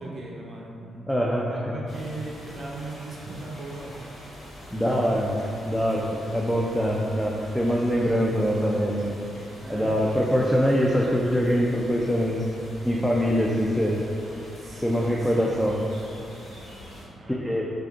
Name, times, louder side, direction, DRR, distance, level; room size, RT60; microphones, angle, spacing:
voice 1, 0.0-4.0 9.6-10.4 14.6-15.6 17.1-17.7, right 2 dB, 50° right, -3 dB, 0.5 m, -38 dB
voice 2, 1.1-1.5 4.7-5.4 5.7-6.0 6.3-9.2 9.7-12.4 12.8-14.0 14.8-15.8 17.3-17.7, equal, 5° left, -3 dB, 0.3 m, -23 dB
sound 1, 1.9-17.0, equal, 85° left, 1.3 m, -44 dB
3.4 x 2.4 x 2.4 m, 2.7 s
hypercardioid pair, 45°, 0 cm